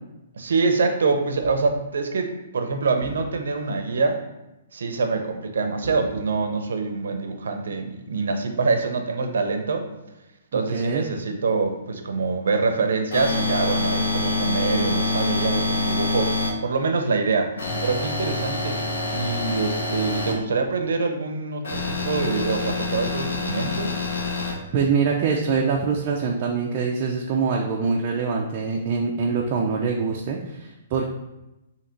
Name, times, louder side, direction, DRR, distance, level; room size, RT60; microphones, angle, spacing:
voice 1, 0.4-4.2 4.7-9.9 10.5-18.8 19.1-23.9, right 4 dB, 85° right, 6 dB, 0.6 m, -25 dB
sound 1, 1.4-1.9 3.0-3.8 5.8-6.7, right 1 dB, 5° right, 1.2 m, -40 dB
voice 2, 10.5-11.1 24.7-31.1, right 5 dB, 35° right, -1 dB, 0.4 m, -24 dB
sound 2, 13.1-16.5 17.6-20.3 21.6-24.5, left 3 dB, 85° left, 1.1 m, -26 dB
3.8 x 2.9 x 4.4 m, 0.95 s
hypercardioid pair, 160°, 0 cm